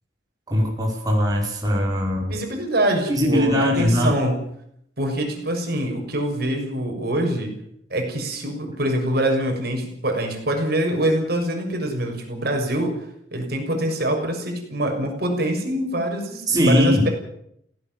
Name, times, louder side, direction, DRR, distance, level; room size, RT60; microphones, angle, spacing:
voice 1, 0.5-2.4 3.1-4.1 16.5-17.0, left 1 dB, 20° right, -2 dB, 5.2 m, -20 dB
voice 2, 2.2-4.3 5.0-7.5 7.9-13.0 13.3-17.1, right 1 dB, 60° right, 3 dB, 6.6 m, -24 dB
18.0 x 17.5 x 9.2 m, 0.71 s
head